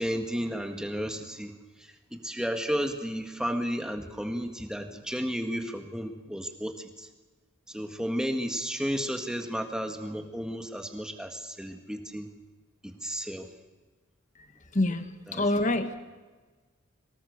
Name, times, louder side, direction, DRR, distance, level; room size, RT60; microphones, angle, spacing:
voice 1, 0.0-7.1 7.7-12.3 12.8-13.5 15.3-15.5, equal, 5° right, 4 dB, 1.7 m, -33 dB
voice 2, 14.7-16.0, left 1 dB, 35° left, 8 dB, 1.4 m, -26 dB
23.5 x 19.0 x 6.7 m, 1.3 s
head